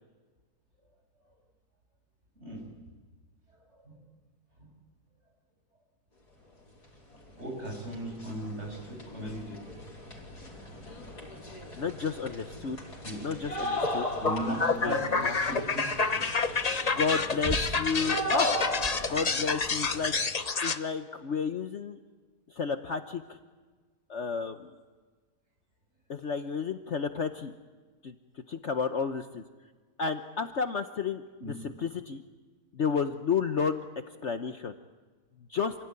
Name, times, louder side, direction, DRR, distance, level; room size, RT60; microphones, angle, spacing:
sound 1, 7.1-7.2 7.5-20.2, left 1 dB, 90° left, 5.3 m, -38 dB
voice 1, 7.1-9.6 13.0-13.2 14.2-16.3 31.4-31.5, right 1 dB, 45° right, 0 dB, 7.8 m, -37 dB
voice 2, 11.8-12.8 13.2-14.1 14.8-15.3 16.9-18.6 19.1-20.1 20.6-22.0 22.5-23.4 24.1-24.7 26.1-27.5 28.0-28.2 28.5-29.4 30.0-32.2 32.7-33.8 34.2-34.7 35.5-35.7, left 5 dB, 50° left, 8 dB, 1.1 m, -31 dB
sound 2, 13.8-20.8, left 4 dB, 30° left, 0.9 m, -29 dB
sound 3, 14.7-20.2, right 1 dB, 20° right, 1.9 m, -41 dB
28.0 x 17.0 x 9.7 m, 1.4 s
omnidirectional pair, 1.7 m